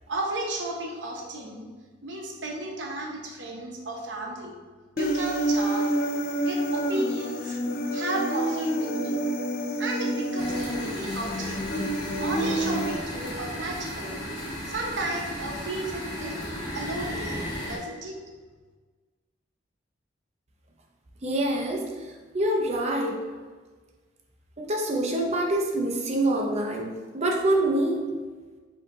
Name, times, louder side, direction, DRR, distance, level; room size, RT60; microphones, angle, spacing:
voice 1, 0.1-1.7 2.0-4.5 5.0-5.9 6.3-7.5 7.9-9.2 9.8-11.7 12.2-14.3 14.6-16.4 16.7-18.1, right 2 dB, 70° right, 0 dB, 0.8 m, -33 dB
Human voice, 5.0-13.0, right 1 dB, 50° left, 0.4 m, -28 dB
sound 1, 10.4-17.8, equal, 25° left, 1.0 m, -35 dB
voice 2, 21.2-23.2 24.6-28.1, right 1 dB, 35° right, 0 dB, 0.6 m, -26 dB
5.1 x 2.9 x 3.6 m, 1.4 s
head